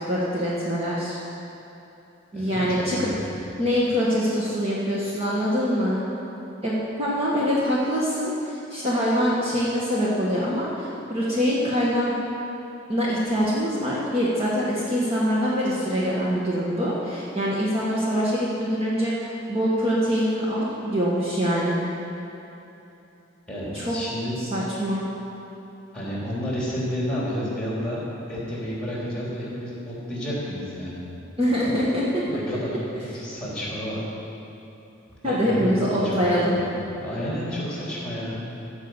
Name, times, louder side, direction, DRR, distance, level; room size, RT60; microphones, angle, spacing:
voice 1, 0.1-1.2 2.3-3.1 3.6-6.0 6.6-12.1 12.9-21.8 23.7-23.9 24.4-25.0 31.4-32.2 35.2-36.5, equal, 30° right, -7 dB, 1.5 m, -24 dB
voice 2, 2.3-3.1 23.5-24.4 25.9-28.0 28.3-31.0 32.2-34.0 35.2-36.7 37.0-38.4, equal, 5° left, -7 dB, 3.3 m, -31 dB
15.0 x 5.6 x 7.9 m, 3.0 s
head